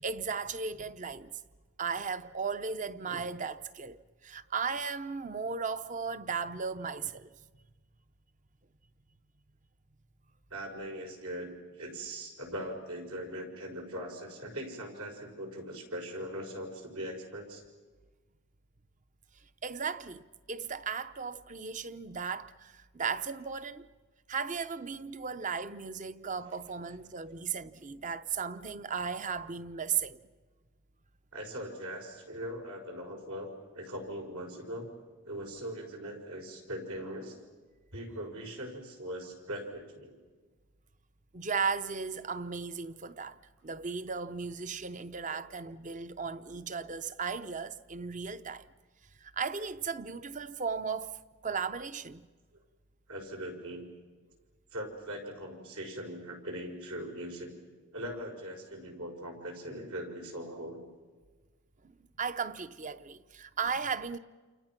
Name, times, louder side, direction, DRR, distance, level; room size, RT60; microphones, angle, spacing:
voice 1, 0.0-1.3 1.8-7.3 19.6-23.9 24.3-30.2 41.3-48.7 49.2-52.3 61.8-61.9 62.2-64.2, right 5 dB, 35° right, 0.7 m, -36 dB
voice 2, 10.5-11.5 11.8-17.6 31.3-34.9 35.2-37.4 37.9-40.2 45.3-45.4 53.1-53.9 54.7-57.6 57.9-60.8, equal, 80° right, 5.3 m, -40 dB
29.0 x 28.0 x 6.0 m
head